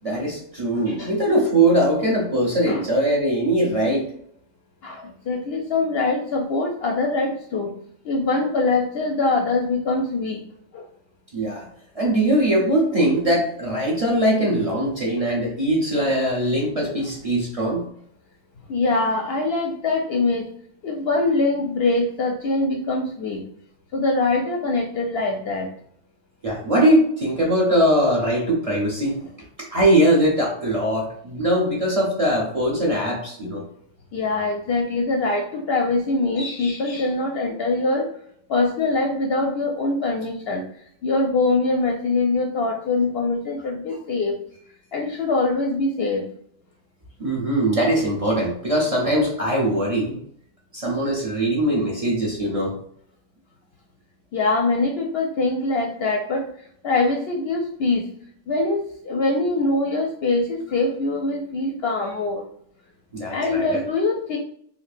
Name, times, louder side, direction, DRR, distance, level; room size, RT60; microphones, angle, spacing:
voice 1, 0.0-4.1 11.3-11.7 11.9-17.9 26.4-29.2 29.6-33.6 47.2-50.2 50.7-52.8 63.1-63.8, right 1 dB, 35° right, -3 dB, 0.7 m, -21 dB
voice 2, 4.8-7.7 8.0-10.4 10.7-10.8 16.0-16.1 18.7-20.4 20.8-23.4 23.9-25.7 34.1-38.1 38.5-40.6 41.0-44.4 44.9-46.2 54.3-56.5 56.8-58.1 58.5-62.4 63.3-64.4, left 3 dB, 65° left, 1 dB, 0.7 m, -23 dB
4.1 x 2.7 x 2.5 m, 0.65 s
omnidirectional pair, 1.4 m